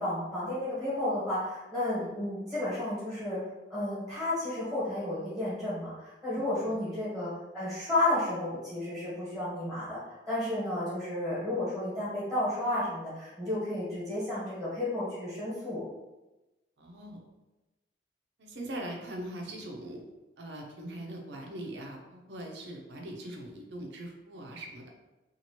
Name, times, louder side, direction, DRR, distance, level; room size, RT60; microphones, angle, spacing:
voice 1, 0.0-3.4 3.7-15.8, left 1 dB, ahead, -10 dB, 1.2 m, -32 dB
voice 2, 6.3-6.9 16.8-17.2 18.4-20.1 20.4-24.8, right 1 dB, 75° right, 1 dB, 0.6 m, -41 dB
2.9 x 2.5 x 2.8 m, 1.1 s
head